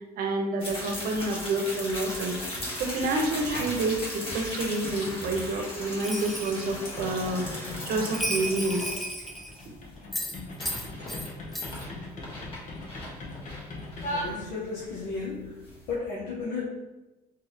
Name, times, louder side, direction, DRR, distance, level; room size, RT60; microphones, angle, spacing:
voice 1, 0.2-2.4 2.8-8.9, right 2 dB, 70° right, 2 dB, 0.8 m, -29 dB
sound 1, 0.6-16.0, left 1 dB, 35° left, 1.2 m, -38 dB
sound 2, 3.4-3.9 4.2-14.9, left 1 dB, 50° left, 0.9 m, -40 dB
Bell, 6.0-6.7 8.1-9.6 10.1-11.3 11.5-11.8, equal, ahead, 0.4 m, -34 dB
voice 2, 14.1-15.6 15.9-16.6, left 4 dB, 80° left, -7 dB, 1.0 m, -34 dB
3.9 x 3.4 x 2.7 m, 1.1 s
cardioid pair, 130°, 16 cm